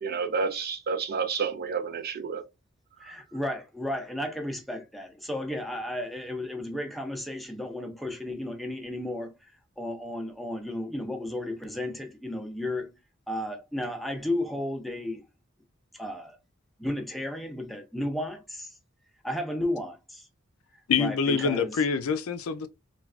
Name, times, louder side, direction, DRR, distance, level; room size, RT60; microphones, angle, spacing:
voice 1, 0.0-2.4, right 5 dB, 50° right, 0.5 m, -30 dB
voice 2, 3.0-9.5 9.8-12.9 13.3-15.2 15.9-16.4 16.8-18.7 19.2-20.3 20.9-21.8, left 1 dB, ahead, 0.5 m, -33 dB
voice 3, 20.9-22.7, left 5 dB, 90° left, 0.4 m, -26 dB
3.2 x 2.3 x 2.3 m
head